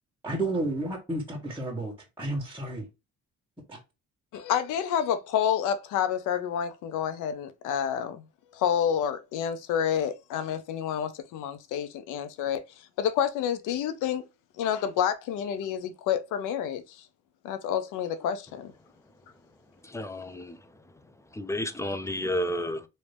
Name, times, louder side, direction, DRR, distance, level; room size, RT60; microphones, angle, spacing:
voice 1, 0.2-2.9 3.7-3.8, right 2 dB, 5° right, 1.5 m, -31 dB
voice 2, 4.3-8.2 8.5-14.2 14.6-17.0 17.4-18.7, left 9 dB, 90° left, 0.6 m, -29 dB
voice 3, 19.8-20.6 21.3-22.8, left 1 dB, 10° left, 0.5 m, -31 dB
3.1 x 2.7 x 3.2 m
cardioid pair, 90°, 30 cm